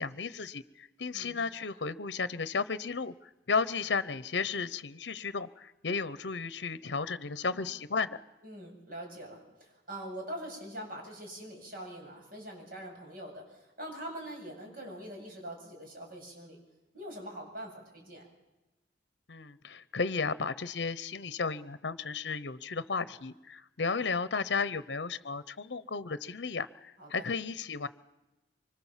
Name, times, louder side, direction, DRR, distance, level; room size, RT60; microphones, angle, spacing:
voice 1, 0.0-8.2 19.3-26.7 27.1-27.9, left 4 dB, 70° left, 15 dB, 0.8 m, -34 dB
voice 2, 1.1-1.4 7.5-7.7 8.4-16.6 16.9-18.3 27.0-27.3, right 1 dB, 55° right, 1 dB, 7.7 m, -43 dB
25.0 x 24.5 x 7.4 m, 1.0 s
head